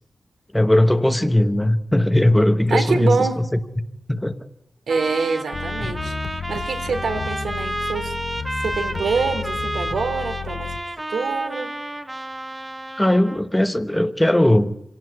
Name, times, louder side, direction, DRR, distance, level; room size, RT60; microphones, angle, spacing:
voice 1, 0.5-3.6 4.1-4.4 5.8-5.9 13.0-14.8, left 1 dB, 5° left, 10 dB, 0.9 m, -18 dB
voice 2, 2.7-3.4 4.9-6.1 6.5-8.1 8.6-10.7 11.1-11.7, right 4 dB, 80° right, 7 dB, 3.3 m, -25 dB
Trumpet, 4.9-13.4, right 1 dB, 15° right, 1.3 m, -31 dB
sound 1, 5.5-10.8, left 6 dB, 70° left, 1.0 m, -32 dB
26.5 x 17.5 x 9.4 m, 0.84 s
wide cardioid pair, 155°, 0 cm